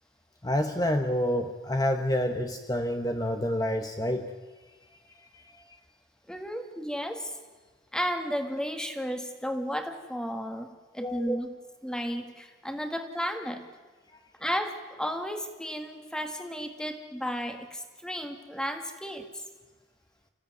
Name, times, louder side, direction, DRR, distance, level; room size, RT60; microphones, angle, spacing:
voice 1, 0.4-4.3 5.3-5.4 11.0-11.2, left 1 dB, 20° left, 5 dB, 1.0 m, -28 dB
voice 2, 6.3-7.4 7.9-11.5 11.8-13.6 14.4-19.4, equal, 5° left, 6 dB, 1.7 m, -33 dB
25.5 x 15.5 x 9.4 m, 1.3 s
head